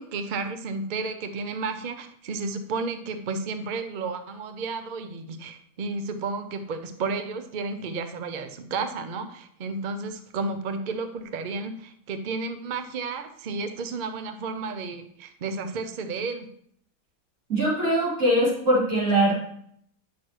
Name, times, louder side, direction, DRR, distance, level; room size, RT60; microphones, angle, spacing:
voice 1, 0.0-16.5, right 4 dB, 85° right, 8 dB, 0.4 m, -32 dB
voice 2, 17.5-19.3, right 1 dB, 50° right, -8 dB, 4.0 m, -22 dB
9.4 x 6.2 x 3.0 m, 0.66 s
omnidirectional pair, 1.8 m